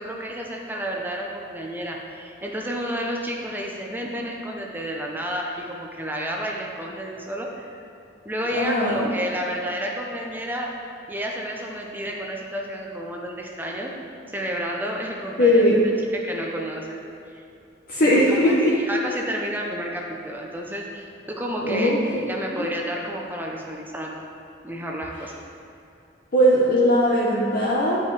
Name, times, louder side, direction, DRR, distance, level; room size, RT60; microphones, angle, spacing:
voice 1, 0.0-7.8 8.2-10.7 11.1-13.9 14.3-15.8 16.1-17.0 17.3-17.4 18.0-24.2 24.6-25.4, equal, 10° right, 0 dB, 0.6 m, -31 dB
voice 2, 8.5-9.1 15.4-15.8 17.9-18.7 21.6-22.0 22.6-22.7 26.3-28.0, equal, 50° left, -6 dB, 0.8 m, -19 dB
10.0 x 5.5 x 3.2 m, 2.7 s
head